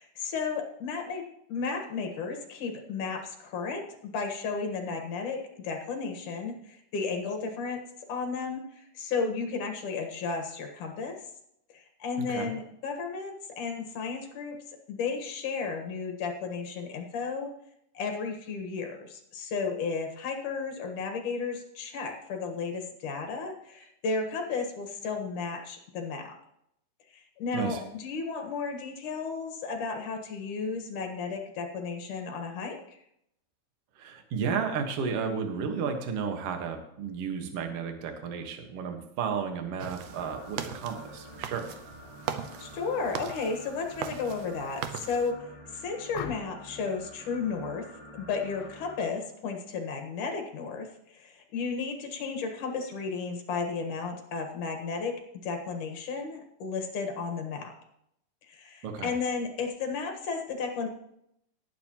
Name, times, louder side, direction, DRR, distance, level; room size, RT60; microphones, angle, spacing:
voice 1, 0.0-7.8 8.1-11.2 11.7-14.6 14.9-17.5 17.9-26.4 27.1-33.0 42.6-45.4 45.7-47.8 48.1-55.2 55.4-57.7 58.5-60.9, left 4 dB, 60° left, 4 dB, 2.6 m, -33 dB
voice 2, 12.2-12.5 27.5-27.8 33.9-41.7 58.8-59.1, right 6 dB, 55° right, 4 dB, 1.7 m, -33 dB
sound 1, 39.8-45.3, right 9 dB, 90° right, 1.8 m, -40 dB
sound 2, 40.0-49.0, equal, 25° right, 5.8 m, -48 dB
sound 3, 46.1-46.7 48.5-48.8 49.2-49.5, left 10 dB, 80° left, 2.6 m, -41 dB
19.0 x 9.3 x 3.0 m, 0.75 s
omnidirectional pair, 4.7 m